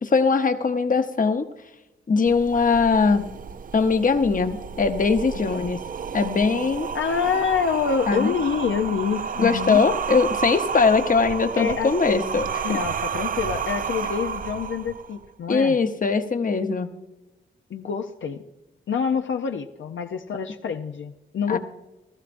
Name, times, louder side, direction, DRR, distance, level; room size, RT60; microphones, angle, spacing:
voice 1, 0.0-1.5 2.1-3.3 3.7-5.8 6.1-6.9 8.1-8.3 9.4-12.8 15.5-16.9 21.5-21.6, left 4 dB, 40° left, 8 dB, 0.9 m, -21 dB
sound 1, 2.3-15.2, right 7 dB, 45° right, 0.4 m, -31 dB
voice 2, 5.4-5.7 6.9-9.8 11.6-12.0 12.6-15.8 17.7-18.4 18.9-21.6, left 6 dB, 75° left, 5 dB, 0.6 m, -26 dB
16.0 x 14.0 x 2.6 m, 1.0 s
wide cardioid pair, 85°, 20 cm